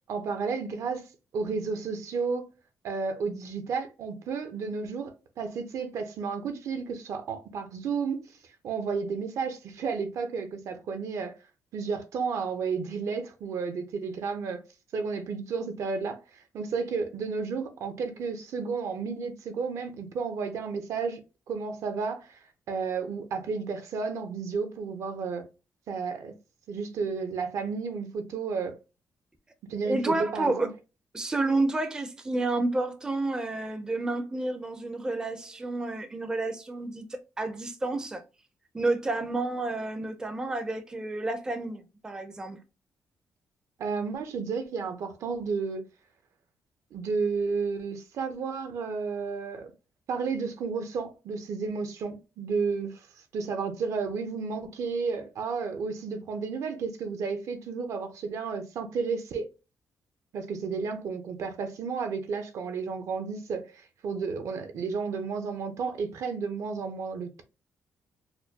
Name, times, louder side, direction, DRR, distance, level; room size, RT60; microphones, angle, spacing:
voice 1, 0.1-1.0 1.3-2.5 2.8-8.2 8.6-11.3 11.7-14.6 14.9-21.2 21.5-22.4 22.7-25.4 25.9-26.3 26.7-28.8 29.7-30.7 43.8-45.8 46.9-49.7 50.1-53.1 53.3-59.5 60.3-67.4, right 5 dB, 65° right, 0.6 m, -32 dB
voice 2, 29.8-30.7 31.1-38.2 38.7-42.6, right 2 dB, 15° right, 0.4 m, -30 dB
4.2 x 2.1 x 2.7 m
cardioid pair, 150°, 6 cm